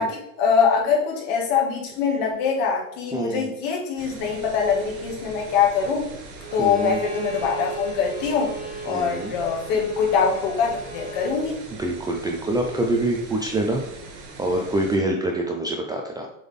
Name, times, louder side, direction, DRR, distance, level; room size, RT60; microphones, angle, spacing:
voice 1, 0.0-6.1 6.5-8.5 8.9-11.6, left 6 dB, 60° left, 0 dB, 1.8 m, -23 dB
voice 2, 3.1-3.5 6.6-7.0 8.9-9.3 11.8-13.8 14.4-16.3, right 1 dB, 10° right, 1 dB, 0.3 m, -25 dB
sound 1, 4.0-15.0, right 3 dB, 55° right, 1.9 m, -41 dB
Bowed string instrument, 6.4-11.4, right 4 dB, 45° left, 2.4 m, -37 dB
7.0 x 3.8 x 3.6 m, 0.78 s
supercardioid pair, 135°, 40 cm